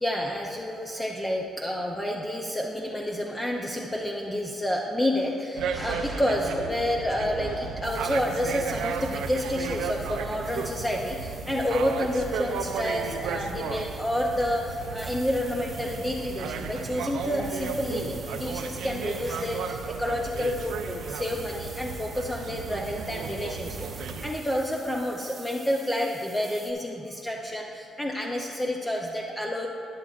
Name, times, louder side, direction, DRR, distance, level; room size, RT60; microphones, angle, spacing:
voice 1, 0.0-29.7, left 1 dB, 15° left, -1 dB, 0.7 m, -29 dB
sound 1, 5.5-24.3, right 5 dB, 85° right, 0.5 m, -34 dB
sound 2, 7.8-26.7, right 4 dB, 30° right, 1.1 m, -48 dB
12.5 x 9.9 x 2.4 m, 2.5 s
cardioid pair, 90°, 0 cm